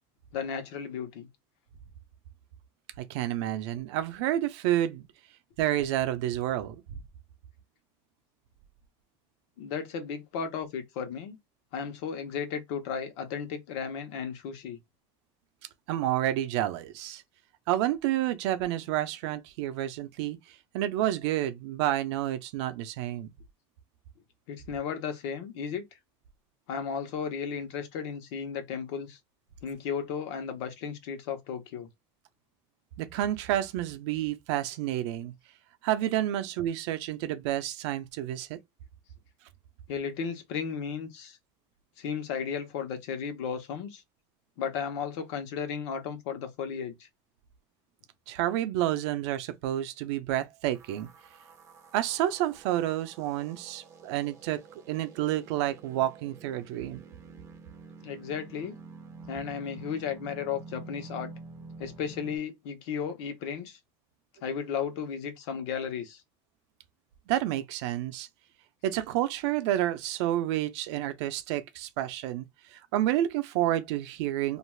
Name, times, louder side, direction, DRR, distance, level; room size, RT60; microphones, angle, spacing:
voice 1, 0.3-1.3 9.6-11.4 11.7-14.8 24.5-25.8 26.7-29.2 29.6-31.9 39.9-41.4 42.0-44.0 44.6-47.1 58.0-58.7 59.3-61.3 61.8-63.8 64.4-66.2, left 7 dB, 80° left, 0.9 m, -34 dB
voice 2, 3.0-5.1 5.6-6.8 15.9-17.2 17.7-20.4 20.7-23.3 33.0-35.3 35.8-38.6 48.3-51.1 51.9-54.6 54.9-57.0 67.3-68.3 68.8-74.6, right 13 dB, 75° right, 0.5 m, -29 dB
sound 1, 50.7-62.4, right 4 dB, 20° right, 0.4 m, -49 dB
2.5 x 2.3 x 3.1 m
cardioid pair, 175°, 15 cm